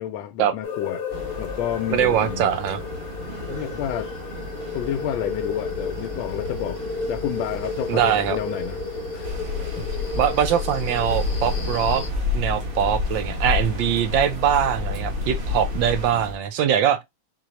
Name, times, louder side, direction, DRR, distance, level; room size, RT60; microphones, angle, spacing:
voice 1, 0.0-2.5 3.5-4.1 4.7-6.8 7.1-8.8 9.1-9.4 9.8-9.9, left 11 dB, 80° left, 1.3 m, -30 dB
sound 1, 0.6-12.1, left 4 dB, 55° left, 0.7 m, -33 dB
sound 2, 1.1-16.4, equal, 35° right, 1.0 m, -37 dB
voice 2, 1.9-2.8 3.5-3.6 7.9-8.4 10.1-12.0 12.3-17.0, right 9 dB, 75° right, 1.4 m, -22 dB
sound 3, 9.2-16.1, left 4 dB, 55° right, 2.6 m, -28 dB
4.5 x 3.8 x 3.0 m
omnidirectional pair, 2.1 m